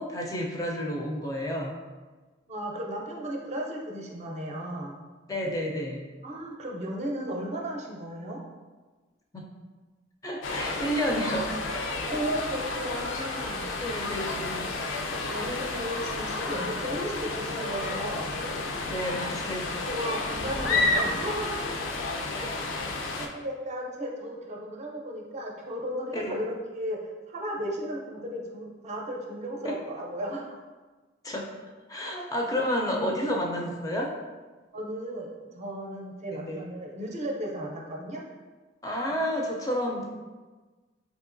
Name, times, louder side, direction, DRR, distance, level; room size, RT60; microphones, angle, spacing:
voice 1, 0.0-1.7 5.3-6.0 9.3-9.5 10.2-11.5 13.8-14.7 18.8-19.6 26.1-26.4 29.6-29.8 31.2-31.5 31.9-34.1 36.3-36.6 38.8-40.0, equal, 20° left, -1 dB, 0.4 m, -30 dB
voice 2, 2.5-5.0 6.2-8.4 12.0-13.7 14.3-14.6 15.2-18.3 19.9-21.7 23.2-30.6 32.0-32.3 34.7-38.2, right 1 dB, 40° right, -1 dB, 0.5 m, -35 dB
sound 1, 10.4-23.3, left 3 dB, 90° left, 0.4 m, -31 dB
sound 2, 20.3-21.9, right 1 dB, 90° right, 0.6 m, -41 dB
3.6 x 2.8 x 2.5 m, 1.3 s
head